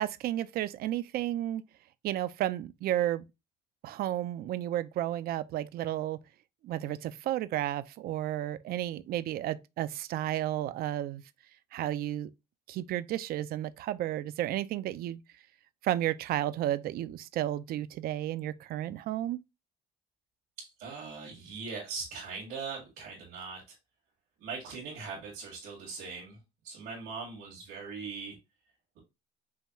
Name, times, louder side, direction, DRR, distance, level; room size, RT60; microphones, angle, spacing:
voice 1, 0.0-1.6 2.0-3.2 3.8-6.2 6.6-11.2 11.7-12.3 12.7-15.2 15.8-19.4, right 13 dB, 65° right, 0.4 m, -32 dB
voice 2, 20.6-23.6 24.4-26.4 26.6-28.4, right 5 dB, 90° right, 1.9 m, -40 dB
5.6 x 2.3 x 2.9 m
cardioid pair, 110°, 17 cm